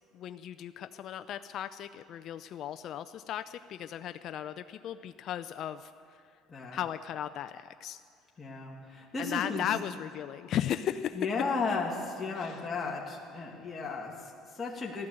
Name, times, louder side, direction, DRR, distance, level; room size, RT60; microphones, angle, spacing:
voice 1, 0.1-5.9 6.7-8.0 9.2-11.2 12.4-12.5, left 10 dB, 55° left, 10 dB, 0.5 m, -36 dB
voice 2, 6.5-6.8 8.4-9.7 11.1-15.1, left 4 dB, 25° left, -3 dB, 2.3 m, -34 dB
15.5 x 12.0 x 7.8 m, 2.5 s
supercardioid pair, 105°, 0 cm